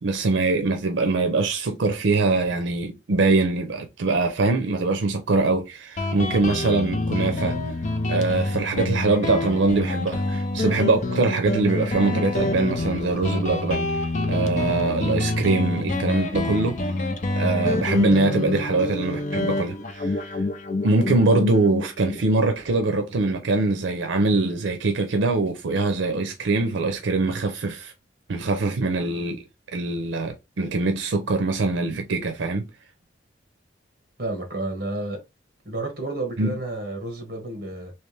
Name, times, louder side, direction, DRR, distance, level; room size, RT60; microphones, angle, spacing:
voice 1, 0.0-7.6 8.1-13.9 14.3-16.8 17.3-20.4 20.8-27.9 28.3-29.4 29.7-32.7 36.4-36.5, right 3 dB, 90° right, 0.5 m, -23 dB
Guitar, 6.0-23.2, left 2 dB, 40° left, 0.5 m, -27 dB
voice 2, 34.2-35.2 35.6-37.9, right 2 dB, 55° right, 1.3 m, -31 dB
3.3 x 2.9 x 3.2 m
head